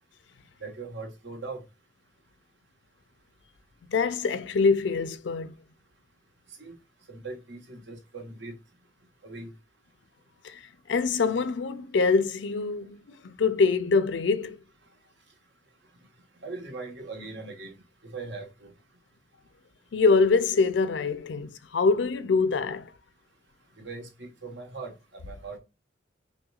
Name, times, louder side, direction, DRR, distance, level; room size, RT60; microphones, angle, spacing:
voice 1, 0.6-1.6 6.6-6.8 7.1-8.6 9.2-9.5 16.4-17.8 18.0-18.7 23.8-25.6, right 3 dB, 75° right, 1.3 m, -40 dB
voice 2, 3.9-5.5 10.4-10.6 10.9-14.6 19.9-22.9, left 4 dB, 80° left, 0.5 m, -24 dB
5.6 x 2.2 x 2.3 m
head